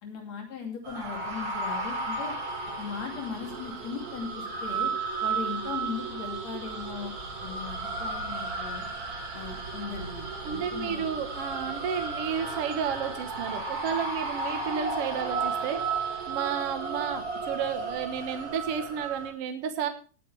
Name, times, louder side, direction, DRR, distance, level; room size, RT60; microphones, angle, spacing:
voice 1, 0.0-2.3 2.8-4.9 5.2-7.1 7.4-8.8 9.3-11.0, left 6 dB, 55° left, 2 dB, 3.9 m, -38 dB
sound 1, 0.8-19.3, right 4 dB, 35° right, 2.0 m, -34 dB
voice 2, 10.4-15.8 16.3-19.9, right 7 dB, 60° right, 7 dB, 1.9 m, -32 dB
19.5 x 9.2 x 3.4 m, 0.37 s
omnidirectional pair, 3.8 m